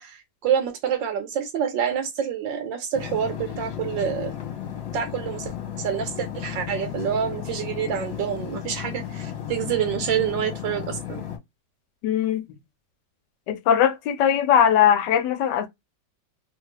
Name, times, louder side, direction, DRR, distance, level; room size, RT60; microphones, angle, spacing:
voice 1, 0.0-4.3 4.9-11.2, right 8 dB, 80° right, 1.4 m, -27 dB
sound 1, 2.9-11.4, left 10 dB, 55° left, 1.2 m, -34 dB
voice 2, 12.0-12.4 13.5-15.7, left 9 dB, 75° left, 1.2 m, -20 dB
3.3 x 2.4 x 3.1 m
omnidirectional pair, 2.0 m